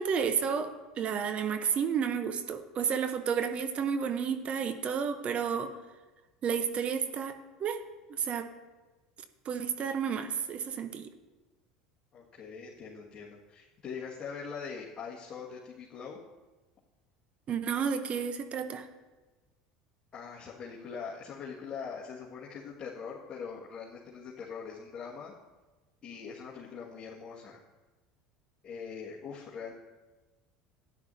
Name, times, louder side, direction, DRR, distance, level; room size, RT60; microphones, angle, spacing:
voice 1, 0.0-5.7 6.4-7.3 7.6-7.8 8.2-8.5 9.5-11.1 17.5-18.8, right 7 dB, 40° right, 9 dB, 0.9 m, -31 dB
voice 2, 12.1-16.2 20.1-25.3 26.0-27.6 28.6-29.7, left 6 dB, 35° left, -6 dB, 1.9 m, -42 dB
13.0 x 10.5 x 2.8 m, 1.2 s
hypercardioid pair, 75°, 3 cm